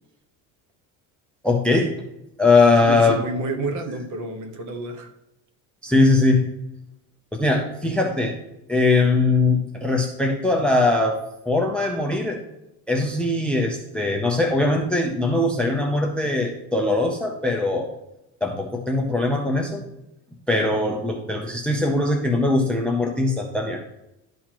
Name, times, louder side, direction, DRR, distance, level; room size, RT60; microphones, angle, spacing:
voice 1, 1.4-1.9 2.4-3.2 5.8-6.5 7.3-8.4 8.7-11.2 11.5-12.4 12.9-17.9 18.4-19.8 20.5-23.8, left 2 dB, 5° left, 3 dB, 0.5 m, -21 dB
voice 2, 2.8-5.1, right 2 dB, 45° right, 5 dB, 1.2 m, -30 dB
11.5 x 4.3 x 3.0 m, 0.86 s
cardioid pair, 145°, 42 cm